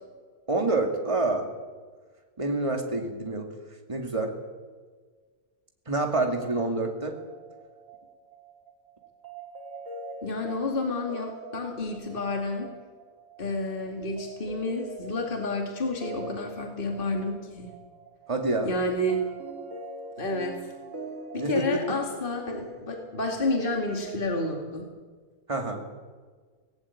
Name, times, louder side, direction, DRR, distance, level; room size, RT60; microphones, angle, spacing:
voice 1, 0.5-1.5 2.4-3.5 3.9-4.3 5.9-7.2 18.3-18.7 21.4-21.8 25.5-25.8, right 2 dB, 20° right, 3 dB, 2.3 m, -27 dB
sound 1, 6.7-24.2, right 2 dB, 55° right, 3.0 m, -43 dB
voice 2, 10.2-12.7 13.4-17.7 18.6-19.2 20.2-20.6 21.3-24.9, left 2 dB, 35° left, 2 dB, 2.5 m, -30 dB
18.5 x 16.5 x 8.5 m, 1.5 s
omnidirectional pair, 1.7 m